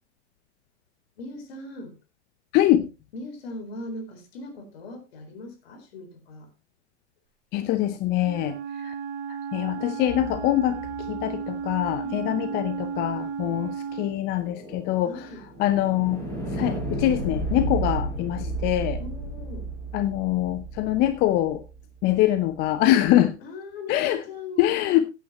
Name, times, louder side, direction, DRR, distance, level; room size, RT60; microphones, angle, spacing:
voice 1, 1.2-2.0 3.1-6.5 12.0-12.6 15.0-15.4 19.0-19.7 23.4-25.0, left 2 dB, 60° left, 4.3 m, -40 dB
voice 2, 2.5-2.9 7.5-8.6 8.8-8.9 9.5-10.8 11.1-15.1 15.6-16.2 16.5-19.0 19.9-21.6 22.0-23.3 23.9-24.2 24.6-25.0, left 13 dB, 30° left, 0.7 m, -23 dB
Wind instrument woodwind instrument, 8.2-14.2, right 6 dB, 30° right, 1.2 m, -34 dB
sound 1, 10.1-12.2 14.1-22.1, right 2 dB, 10° left, 6.2 m, -33 dB
15.5 x 9.2 x 3.0 m
hypercardioid pair, 110°, 35 cm